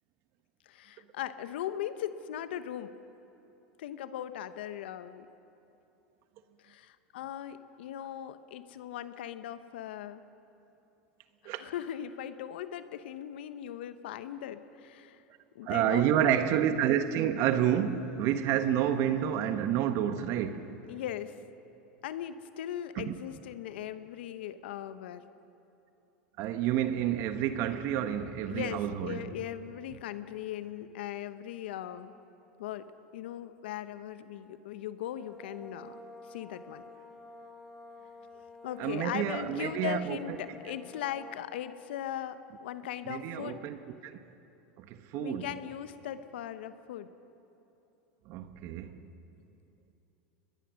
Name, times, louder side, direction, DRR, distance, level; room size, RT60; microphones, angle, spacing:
voice 1, 0.7-2.9 3.8-5.3 6.6-10.2 11.4-15.2 15.5-16.3 20.9-21.4 22.0-25.2 28.4-32.1 32.6-36.0 36.3-36.8 38.6-43.6 45.1-47.1, left 11 dB, 75° left, 1.0 m, -39 dB
voice 2, 15.6-20.8 23.0-23.1 26.4-29.2 38.8-40.2 43.1-43.8 44.0-44.2 44.8-45.5 48.3-48.9, right 10 dB, 55° right, 1.3 m, -29 dB
sound 1, 35.0-41.6, left 2 dB, ahead, 3.2 m, -50 dB
23.0 x 20.5 x 6.4 m
hypercardioid pair, 100°, 6 cm